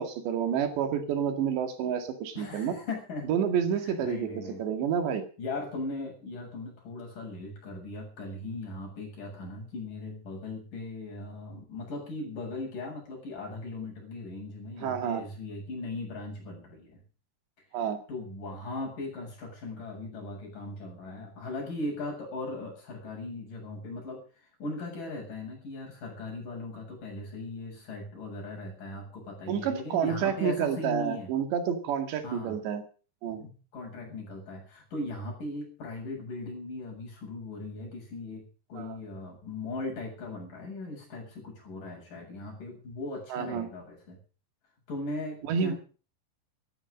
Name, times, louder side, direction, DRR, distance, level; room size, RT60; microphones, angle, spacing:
voice 1, 0.0-2.8 3.3-4.3 4.6-5.2 14.8-15.3 17.7-18.0 29.5-32.8 33.2-33.4 38.7-39.0 43.3-43.7 45.5-45.7, right 8 dB, 85° right, 8 dB, 4.4 m, -29 dB
voice 2, 2.3-3.3 3.8-4.6 5.4-17.0 18.1-24.2 24.6-31.3 32.2-32.6 33.3-44.2 44.9-45.8, left 2 dB, 50° left, -1 dB, 8.9 m, -38 dB
14.5 x 13.5 x 6.5 m, 0.38 s
omnidirectional pair, 4.9 m